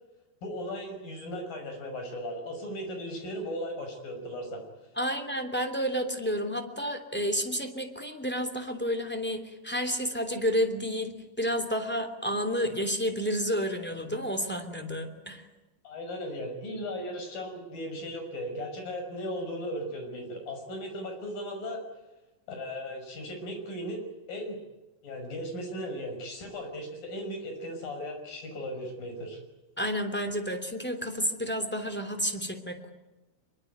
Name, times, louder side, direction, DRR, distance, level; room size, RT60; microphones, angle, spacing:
voice 1, 0.4-4.6 5.0-5.1 15.8-21.8 22.5-24.6 25.0-29.4, equal, 85° left, 5 dB, 7.7 m, -37 dB
voice 2, 5.0-15.4 29.8-32.9, equal, 5° left, 5 dB, 2.4 m, -30 dB
24.5 x 23.0 x 9.4 m, 1.1 s
omnidirectional pair, 3.9 m